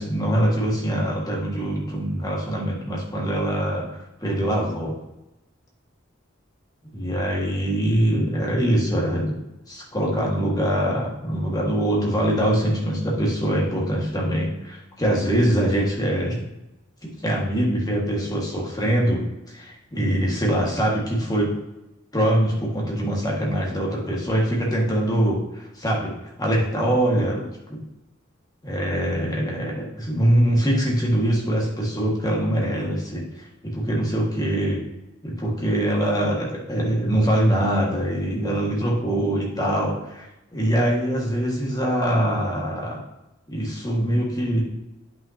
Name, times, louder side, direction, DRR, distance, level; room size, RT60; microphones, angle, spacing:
voice 1, 0.0-3.8 4.2-4.9 6.9-9.4 9.7-16.4 17.2-19.2 19.5-21.5 22.1-26.1 26.4-27.8 28.6-34.8 35.2-43.0 43.5-44.6, right 1 dB, 20° left, -3 dB, 1.8 m, -23 dB
9.1 x 5.8 x 2.8 m, 0.94 s
head